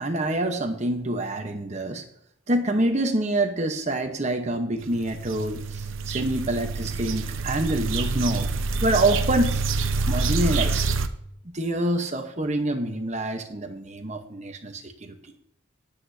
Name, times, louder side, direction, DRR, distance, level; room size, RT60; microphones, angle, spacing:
voice 1, 0.0-2.0 2.5-8.5 8.8-9.7 10.1-10.8 11.4-15.1, right 1 dB, 35° right, 6 dB, 1.0 m, -26 dB
sound 1, 4.8-11.1, right 3 dB, 75° right, 0.8 m, -27 dB
18.0 x 8.4 x 2.8 m, 0.71 s
head